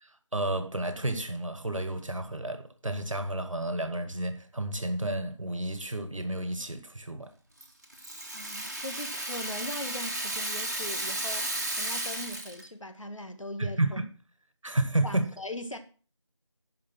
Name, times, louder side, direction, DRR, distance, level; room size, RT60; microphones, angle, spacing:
voice 1, 0.0-7.3 13.6-14.0 14.6-15.3, right 1 dB, 85° right, 1.6 m, -31 dB
Rattle (instrument), 7.6-12.7, right 1 dB, 35° right, 1.3 m, -34 dB
voice 2, 8.3-14.0 15.0-15.8, left 1 dB, 80° left, 1.9 m, -40 dB
11.5 x 5.2 x 6.0 m
figure-of-eight pair, 175°, 16 cm